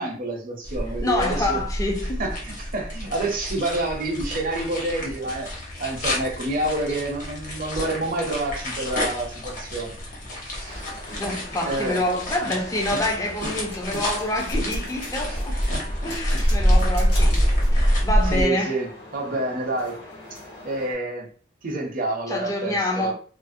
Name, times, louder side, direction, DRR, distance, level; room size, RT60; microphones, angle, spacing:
voice 1, 0.0-1.6 2.2-5.5 5.8-9.9 10.4-10.9 11.6-12.0 12.9-13.0 15.3-15.4 15.7-16.1 18.3-18.9 19.1-20.0 20.3-20.4 20.6-21.3 21.6-23.1, right 2 dB, 50° right, 0.6 m, -28 dB
sound 1, 0.6-18.4, equal, 45° left, 0.9 m, -26 dB
voice 2, 1.0-2.2 11.1-15.6 16.0-18.8 22.3-23.1, left 1 dB, 20° left, 0.4 m, -27 dB
sound 2, 10.7-20.9, left 1 dB, 65° left, 1.2 m, -41 dB
2.5 x 2.0 x 2.5 m
head